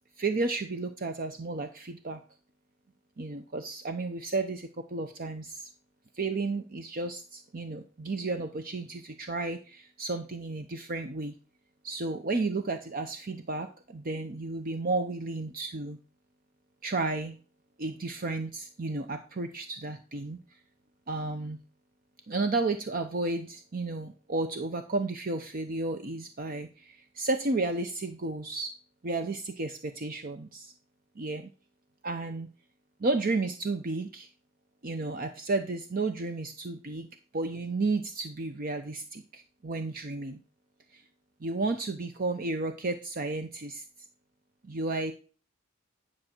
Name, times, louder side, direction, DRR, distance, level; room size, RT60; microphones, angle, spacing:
voice 1, 0.2-2.2 3.2-5.7 6.1-11.3 11.8-16.0 16.8-17.4 17.8-20.4 21.1-21.6 22.3-28.7 29.0-30.7 31.2-31.5 32.0-32.5 33.0-34.3 34.8-37.1 37.3-40.4 40.9-41.0 41.4-43.8 44.6-45.1, right 3 dB, 45° right, 7 dB, 0.7 m, -32 dB
10.5 x 6.0 x 4.4 m, 0.36 s
head